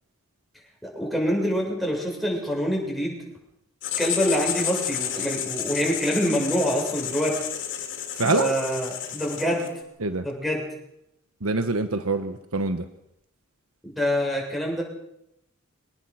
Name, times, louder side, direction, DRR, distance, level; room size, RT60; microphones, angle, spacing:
voice 1, 0.8-3.2 4.0-7.4 8.2-9.7 10.2-10.6 13.8-14.8, equal, ahead, -1 dB, 7.3 m, -26 dB
Writing, 3.8-9.8, left 9 dB, 60° left, 3.9 m, -31 dB
voice 2, 8.2-8.5 10.0-10.3 11.4-12.9, right 3 dB, 85° right, 8 dB, 1.2 m, -25 dB
25.0 x 19.5 x 6.4 m, 0.81 s
head